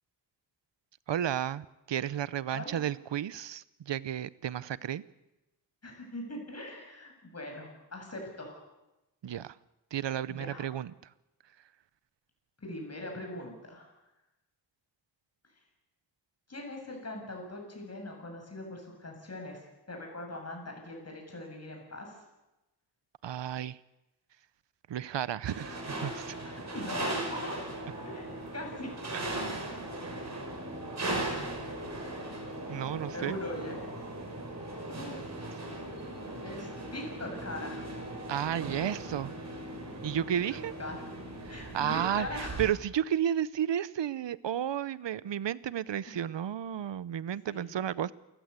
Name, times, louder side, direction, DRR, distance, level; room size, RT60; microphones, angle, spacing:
voice 1, 1.1-5.0 9.2-9.6 9.9-10.9 23.2-23.8 24.9-26.4 29.1-29.2 32.7-33.4 38.3-39.3 40.0-40.7 41.4-48.1, right 10 dB, 80° right, 18 dB, 0.8 m, -32 dB
voice 2, 2.5-2.9 5.8-8.6 10.3-10.7 12.6-13.9 16.5-19.6 19.9-22.2 26.4-27.8 28.1-28.9 33.1-33.8 34.9-35.2 36.4-37.9 40.5-41.0 41.5-42.6 46.1-46.2 47.5-47.7, left 1 dB, 35° left, 2 dB, 7.2 m, -41 dB
sound 1, 25.5-42.6, right 1 dB, 40° right, 5.8 m, -38 dB
28.5 x 15.5 x 8.3 m, 0.98 s
wide cardioid pair, 120°, 43 cm